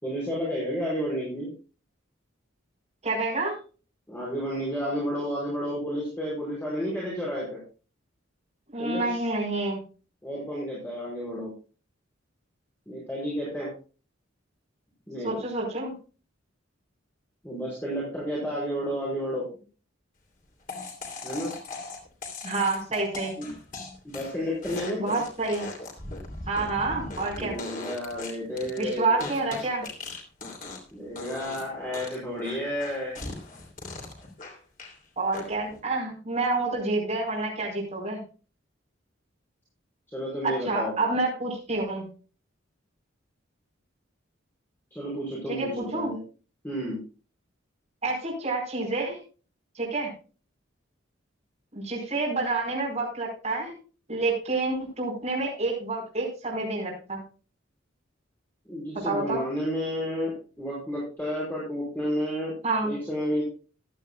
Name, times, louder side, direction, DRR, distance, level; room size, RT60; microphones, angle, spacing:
voice 1, 0.0-1.5 4.1-7.6 8.8-9.1 10.2-11.5 12.9-13.7 15.1-15.4 17.4-19.5 21.2-21.5 23.4-23.5 24.0-25.2 27.3-29.4 30.9-33.2 40.1-41.0 45.0-46.2 46.6-47.0 58.7-62.5 62.8-63.4, equal, 10° left, -6 dB, 5.4 m, -31 dB
voice 2, 3.0-3.5 8.7-9.8 15.2-15.9 22.4-23.4 25.0-25.7 26.5-27.6 28.8-29.8 35.2-38.2 40.4-42.0 45.5-46.1 48.0-49.2 49.7-50.1 51.7-53.7 54.1-57.2 59.0-59.4 62.6-62.9, right 3 dB, 35° right, -3 dB, 4.7 m, -28 dB
sound 1, 20.7-30.9 31.2-31.6 31.9-35.0 35.3-35.8, left 3 dB, 45° left, 3.1 m, -39 dB
15.0 x 12.0 x 2.4 m, 0.35 s
head